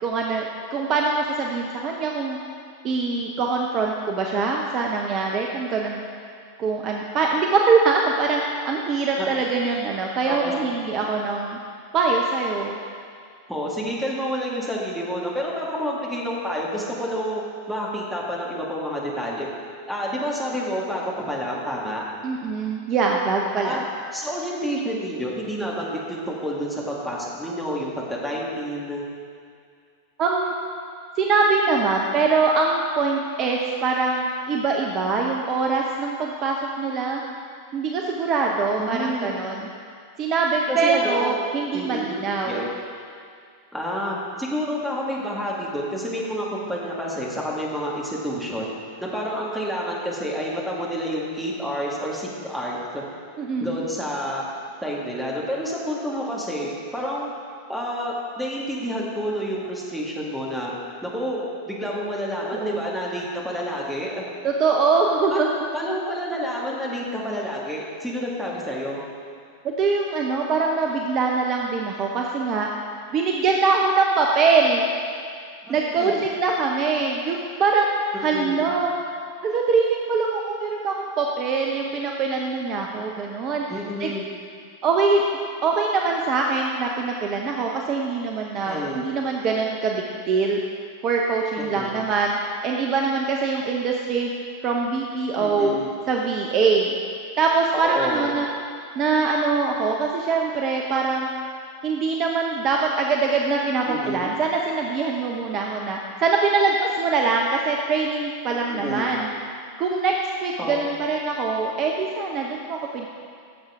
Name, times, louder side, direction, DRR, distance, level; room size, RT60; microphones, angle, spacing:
voice 1, 0.0-2.4 2.8-6.0 6.6-11.6 11.9-12.8 22.2-23.8 30.2-30.5 31.2-37.2 37.7-39.7 40.2-42.7 53.4-53.8 62.5-62.8 64.4-65.6 69.6-72.7 73.1-74.8 75.7-77.9 78.2-78.9 79.4-83.7 84.0-84.1 84.8-85.2 85.6-90.6 91.0-92.4 92.6-94.3 94.6-95.8 96.1-96.9 97.4-98.5 98.9-101.3 101.8-109.3 109.8-110.1 110.4-113.1, right 4 dB, 35° right, 0 dB, 0.8 m, -23 dB
voice 2, 13.5-17.4 17.7-19.5 19.9-22.0 23.6-23.8 24.1-29.0 38.8-39.3 40.7-41.4 41.7-42.7 43.7-48.7 49.0-53.0 53.6-54.4 54.8-57.3 57.7-60.7 61.0-64.2 65.3-65.5 65.7-69.0 75.7-76.2 78.1-78.7 83.7-84.2 88.6-89.0 91.6-91.9 95.4-95.9 97.7-98.3 103.9-104.3 108.7-109.1 110.6-110.8, equal, ahead, -5 dB, 2.2 m, -29 dB
15.5 x 7.2 x 3.7 m, 2.2 s
figure-of-eight pair, 90°, 0 cm